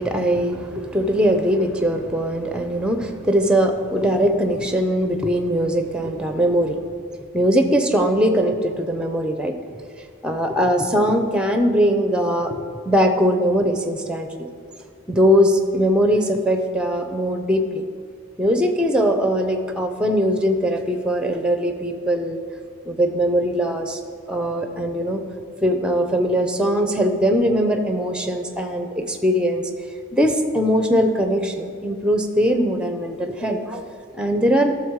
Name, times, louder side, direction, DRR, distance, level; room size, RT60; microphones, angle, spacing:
voice 1, 0.0-6.8 7.3-9.8 10.2-14.5 15.1-17.8 18.4-22.4 22.9-24.0 24.3-25.2 25.6-29.7 30.1-33.9 34.1-34.7, equal, 5° right, 6 dB, 0.7 m, -21 dB
13.0 x 6.5 x 4.7 m, 2.1 s
head